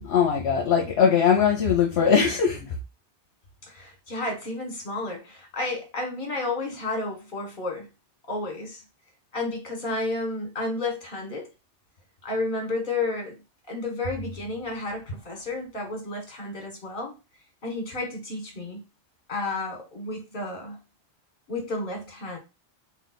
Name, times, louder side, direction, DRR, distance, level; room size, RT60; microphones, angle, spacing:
voice 1, 0.0-2.6, left 7 dB, 70° left, 1.0 m, -20 dB
voice 2, 3.7-7.9 8.3-8.8 9.3-11.5 12.2-13.4 13.7-17.1 17.6-18.8 19.3-20.8 21.5-22.4, left 2 dB, 45° left, 1.4 m, -31 dB
3.3 x 2.6 x 4.1 m
omnidirectional pair, 1.2 m